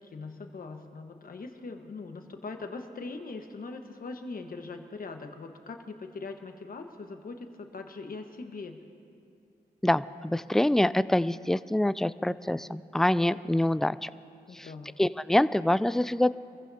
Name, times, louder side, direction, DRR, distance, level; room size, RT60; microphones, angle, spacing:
voice 1, 0.0-8.8 14.5-14.9, left 3 dB, 55° left, 5 dB, 1.4 m, -41 dB
voice 2, 9.8-14.1 15.0-16.3, left 1 dB, 5° left, 16 dB, 0.3 m, -25 dB
25.5 x 15.0 x 2.8 m, 2.4 s
cardioid pair, 60°, 17 cm